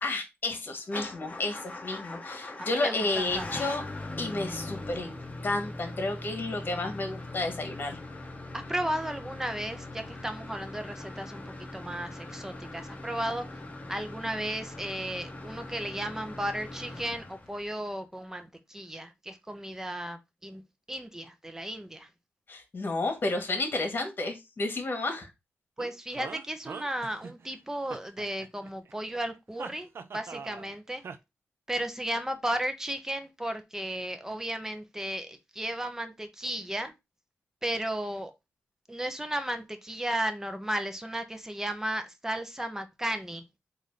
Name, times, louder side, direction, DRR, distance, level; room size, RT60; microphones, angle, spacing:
voice 1, 0.0-3.8 4.2-8.0 22.5-25.3, left 2 dB, 50° left, 1.5 m, -31 dB
Motor vehicle (road) / Engine starting / Idling, 0.8-17.8, left 2 dB, 30° left, 0.9 m, -41 dB
voice 2, 2.6-3.7 8.5-11.4 11.7-13.5 13.9-20.6 20.9-22.1 25.8-31.0 31.7-36.9 37.6-38.3 38.9-43.4, right 1 dB, 10° right, 0.9 m, -34 dB
sound 1, 25.8-27.5 27.9-28.9 29.6-30.7 31.0-31.2, right 5 dB, 65° right, 0.5 m, -42 dB
3.9 x 2.7 x 4.7 m
cardioid pair, 80°, 4 cm